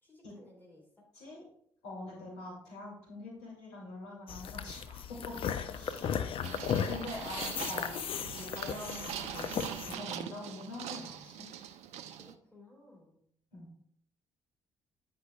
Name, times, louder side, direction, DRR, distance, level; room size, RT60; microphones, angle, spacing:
voice 1, 0.0-1.1 5.3-6.4 12.1-13.2, left 2 dB, 15° left, -1 dB, 2.6 m, -56 dB
voice 2, 1.8-5.3 5.6-6.2 6.5-11.5 13.5-13.7, left 2 dB, 70° left, -4 dB, 2.6 m, -45 dB
sound 1, 4.3-10.0, left 8 dB, 50° left, 0.4 m, -36 dB
sound 2, 6.4-12.3, right 9 dB, 65° right, 0.5 m, -42 dB
9.3 x 5.3 x 2.3 m, 0.67 s
figure-of-eight pair, 45°, 12 cm